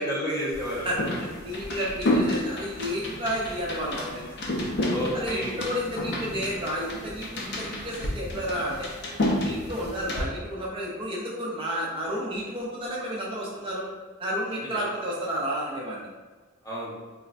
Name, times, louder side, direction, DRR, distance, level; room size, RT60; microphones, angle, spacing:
voice 1, 0.0-0.9 4.9-5.6 14.6-14.8 16.6-17.0, equal, 20° left, -6 dB, 0.7 m, -31 dB
sound 1, 0.5-10.2, left 1 dB, 55° left, 0.5 m, -30 dB
voice 2, 0.8-4.3 5.1-8.9 9.3-13.9 14.2-16.1, equal, 25° right, -4 dB, 0.4 m, -31 dB
3.9 x 2.1 x 2.4 m, 1.4 s
head